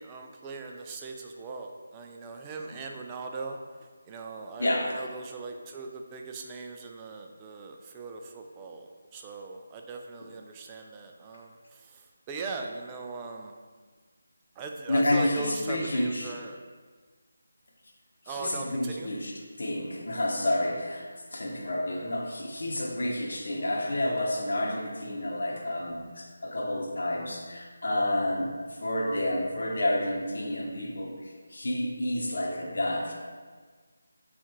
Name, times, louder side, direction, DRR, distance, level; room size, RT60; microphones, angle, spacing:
voice 1, 0.0-3.6 4.1-12.0 12.3-13.5 14.6-16.6 18.3-19.1, right 3 dB, 15° right, 2 dB, 0.3 m, -39 dB
voice 2, 4.6-4.9 14.9-16.3 18.3-19.3 19.6-33.1, left 1 dB, 65° left, -1 dB, 0.9 m, -30 dB
6.8 x 2.5 x 3.0 m, 1.5 s
figure-of-eight pair, 165°, 0 cm